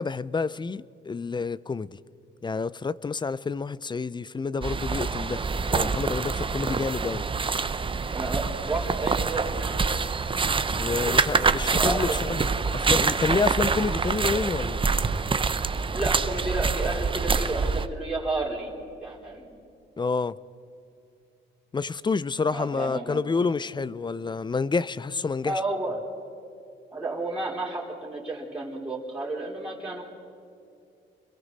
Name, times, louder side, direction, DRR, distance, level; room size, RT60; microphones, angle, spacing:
voice 1, 0.0-2.0 2.4-7.3 10.8-14.9 20.0-20.4 21.7-25.6, left 4 dB, 25° left, 0.5 m, -29 dB
sound 1, 4.6-17.9, right 4 dB, 25° right, 0.8 m, -26 dB
voice 2, 8.1-9.8 11.0-11.3 11.7-12.1 15.9-18.7 19.0-19.5 22.5-23.2 25.4-26.0 26.9-30.0, right 2 dB, 5° right, 4.2 m, -31 dB
29.5 x 22.5 x 4.2 m
cardioid pair, 90°, 20 cm